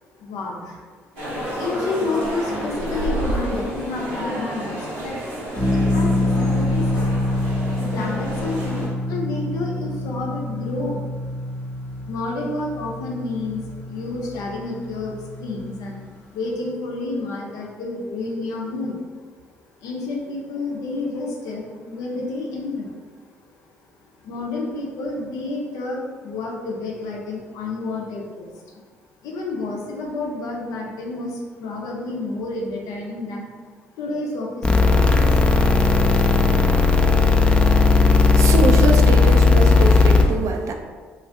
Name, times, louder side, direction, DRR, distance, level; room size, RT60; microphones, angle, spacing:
voice 1, 0.2-0.9 1.6-5.2 5.7-7.3 7.8-11.1 12.0-16.0 16.3-19.0 19.8-22.9 24.2-28.8 29.2-33.5 34.0-35.8, left 3 dB, 70° left, -1 dB, 0.6 m, -30 dB
sound 1, 1.2-8.9, right 1 dB, 90° right, 1.0 m, -30 dB
sound 2, 5.5-16.1, left 1 dB, 30° left, 0.8 m, -26 dB
sound 3, 34.6-40.2, left 4 dB, 15° left, 0.4 m, -15 dB
voice 2, 38.4-40.7, right 4 dB, 55° right, 4 dB, 0.4 m, -23 dB
2.5 x 2.4 x 3.3 m, 1.5 s
hypercardioid pair, 50°, 6 cm